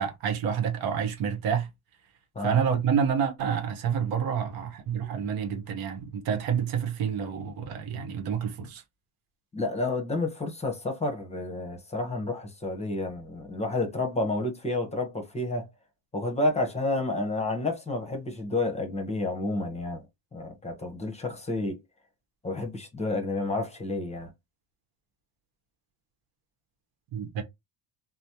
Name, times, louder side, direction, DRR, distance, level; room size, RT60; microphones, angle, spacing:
voice 1, 0.0-1.7 2.4-8.8 27.1-27.4, right 7 dB, 65° right, 0.9 m, -28 dB
voice 2, 9.5-15.7 16.1-20.0 20.3-21.8 22.4-24.3, left 2 dB, 15° left, 0.8 m, -30 dB
3.2 x 2.0 x 2.7 m
supercardioid pair, 105°, 39 cm